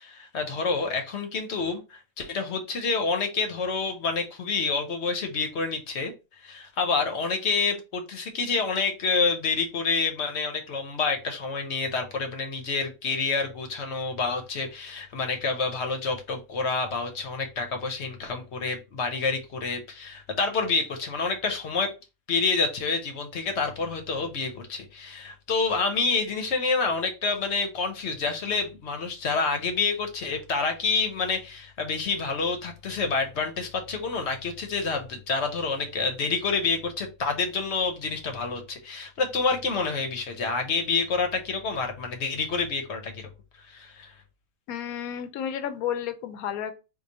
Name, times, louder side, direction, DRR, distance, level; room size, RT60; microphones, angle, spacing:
voice 1, 0.0-6.1 6.4-21.9 22.3-43.3 43.7-44.1, left 4 dB, 55° left, 0.9 m, -28 dB
voice 2, 44.7-46.7, left 9 dB, 85° left, 1.1 m, -31 dB
4.6 x 2.4 x 2.7 m
omnidirectional pair, 1.5 m